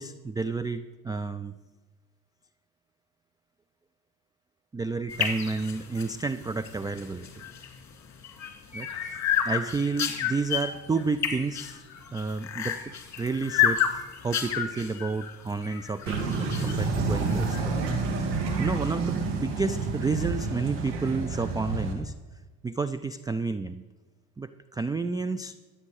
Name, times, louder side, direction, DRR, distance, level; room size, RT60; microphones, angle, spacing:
voice 1, 0.0-1.5 4.7-7.4 8.7-11.8 12.1-12.8 13.2-17.8 18.6-22.1 22.6-23.8 24.4-25.6, right 4 dB, 10° right, 12 dB, 0.3 m, -31 dB
sound 1, 5.1-17.6, left 9 dB, 40° left, 2.5 m, -31 dB
sound 2, 16.1-21.9, right 4 dB, 70° right, 2.5 m, -29 dB
13.5 x 8.5 x 6.4 m, 1.3 s
supercardioid pair, 80°, 45 cm